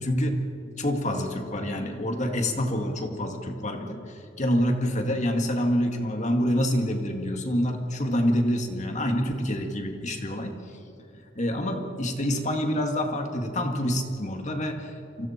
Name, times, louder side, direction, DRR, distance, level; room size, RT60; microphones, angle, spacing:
voice 1, 0.0-0.5 0.8-4.0 4.4-10.6 11.4-15.3, equal, 40° left, 4 dB, 2.1 m, -27 dB
29.0 x 25.0 x 4.5 m, 2.5 s
head